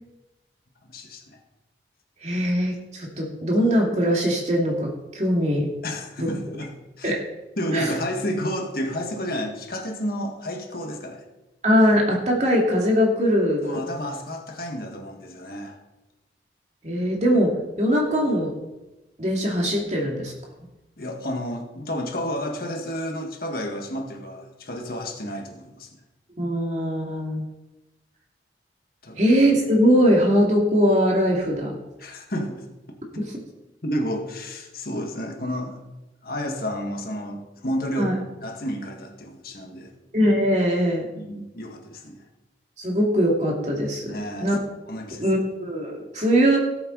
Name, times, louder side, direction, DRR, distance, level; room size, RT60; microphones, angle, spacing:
voice 1, 0.8-1.4 5.8-7.1 7.6-11.2 13.6-15.8 21.0-25.9 29.0-29.2 32.0-32.7 33.8-35.8 36.2-39.9 41.2-42.2 44.1-44.6 44.9-45.3, equal, 55° left, 2 dB, 1.8 m, -31 dB
voice 2, 2.2-5.7 6.2-6.3 7.0-7.2 7.7-7.9 11.6-13.8 16.8-18.5 19.2-20.3 26.4-27.4 29.2-31.7 38.0-38.1 40.1-41.1 42.8-44.0 44.4-44.6 45.2-46.6, equal, 40° right, 0 dB, 2.4 m, -21 dB
18.0 x 7.7 x 4.0 m, 1.0 s
head